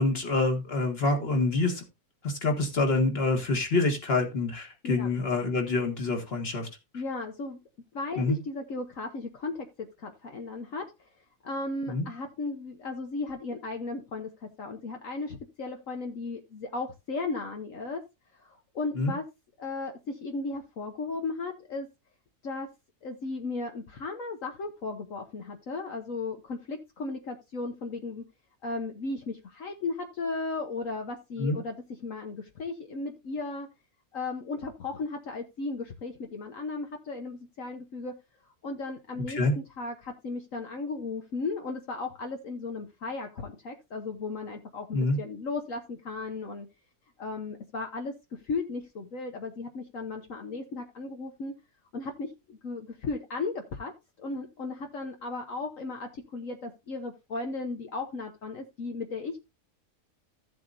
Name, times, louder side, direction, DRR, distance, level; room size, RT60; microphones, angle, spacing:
voice 1, 0.0-1.8 2.2-6.7 8.2-8.4 11.9-12.1 19.0-19.1 31.4-31.6 39.3-39.5 44.9-45.2, left 2 dB, 40° left, 3 dB, 1.9 m, -26 dB
voice 2, 6.9-7.6 7.9-10.9 11.4-18.0 18.3-19.3 19.6-21.9 22.4-22.7 23.0-28.2 28.6-31.8 32.0-33.7 34.1-38.1 38.6-46.7 47.2-51.5 51.9-53.9 54.2-59.4, left 3 dB, 60° left, 4 dB, 1.3 m, -35 dB
14.5 x 7.7 x 2.6 m, 0.24 s
omnidirectional pair, 1.6 m